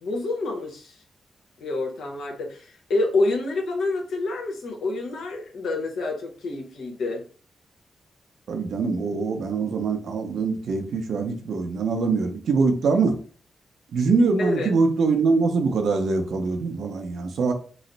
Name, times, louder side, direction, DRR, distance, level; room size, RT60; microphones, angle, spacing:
voice 1, 0.0-1.0 1.6-7.2 14.4-14.7, left 2 dB, 85° left, 1 dB, 1.0 m, -27 dB
voice 2, 8.5-13.2 13.9-17.5, right 4 dB, 80° right, 5 dB, 0.7 m, -23 dB
3.1 x 2.0 x 3.9 m, 0.41 s
cardioid pair, 80°, 0 cm